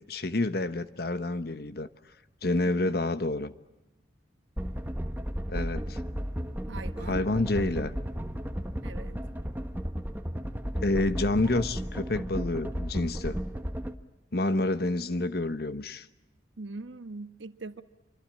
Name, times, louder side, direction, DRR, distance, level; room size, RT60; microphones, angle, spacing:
voice 1, 0.1-1.9 2.4-3.5 5.5-6.0 7.0-7.9 10.8-13.4 14.3-16.1, left 2 dB, 55° left, 1.1 m, -28 dB
sound 1, 4.6-13.9, equal, 10° right, 1.2 m, -34 dB
voice 2, 6.7-7.2 8.8-9.2 16.6-17.8, right 3 dB, 90° right, 1.4 m, -42 dB
26.5 x 25.0 x 8.8 m
head